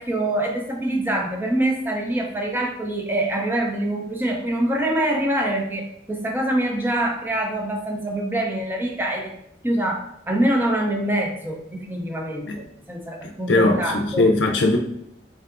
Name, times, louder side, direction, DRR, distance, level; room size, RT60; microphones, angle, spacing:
voice 1, 0.0-9.3 9.6-14.3, right 1 dB, 10° right, 1 dB, 0.5 m, -25 dB
voice 2, 13.5-14.8, left 2 dB, 80° left, 3 dB, 0.5 m, -19 dB
3.8 x 3.3 x 2.5 m, 0.79 s
head